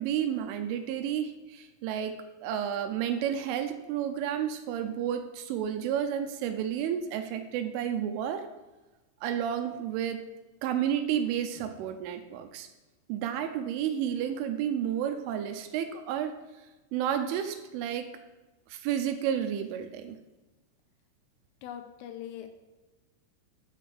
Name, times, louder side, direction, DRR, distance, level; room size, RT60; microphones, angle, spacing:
voice 1, 0.0-8.5 9.2-10.3 10.6-12.7 13.1-16.4 16.9-18.1 18.7-20.2, right 9 dB, 80° right, 7 dB, 3.1 m, -31 dB
voice 2, 21.6-22.5, left 10 dB, 80° left, 7 dB, 3.4 m, -41 dB
9.9 x 6.1 x 7.5 m, 1.1 s
omnidirectional pair, 5.8 m